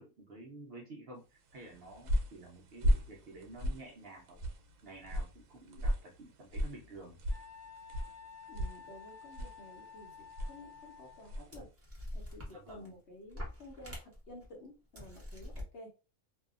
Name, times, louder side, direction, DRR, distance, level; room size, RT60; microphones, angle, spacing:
voice 1, 0.0-4.4 4.8-7.2 12.5-12.9, right 2 dB, 60° right, 0 dB, 0.6 m, -51 dB
sound 1, 1.5-11.6, equal, 80° right, 1.0 m, -37 dB
Wind instrument woodwind instrument, 7.3-11.4, left 6 dB, 85° left, 1.1 m, -52 dB
voice 2, 8.5-11.7 12.1-15.9, left 1 dB, 55° left, 0 dB, 1.0 m, -52 dB
sound 2, 10.4-10.5 11.2-11.3 11.5-12.9 13.3-14.5 14.9-15.7, left 1 dB, 15° right, 0.6 m, -45 dB
2.6 x 2.3 x 2.4 m, 0.31 s
omnidirectional pair, 1.4 m